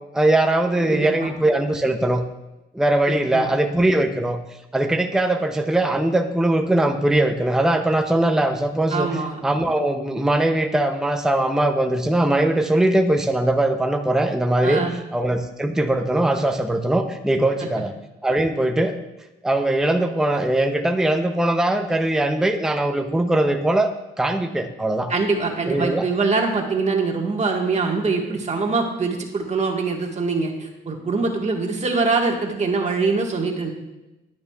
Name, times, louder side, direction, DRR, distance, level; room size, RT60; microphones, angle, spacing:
voice 1, 0.1-2.2 2.7-4.4 4.7-14.8 15.1-17.9 18.2-19.0 19.4-23.9 24.2-25.1 25.7-26.1, right 1 dB, 5° right, 5 dB, 0.6 m, -21 dB
voice 2, 8.9-9.4 14.6-14.9 25.1-33.7, right 4 dB, 35° right, 2 dB, 1.6 m, -23 dB
10.5 x 9.7 x 2.4 m, 1.0 s
cardioid pair, 90°, 20 cm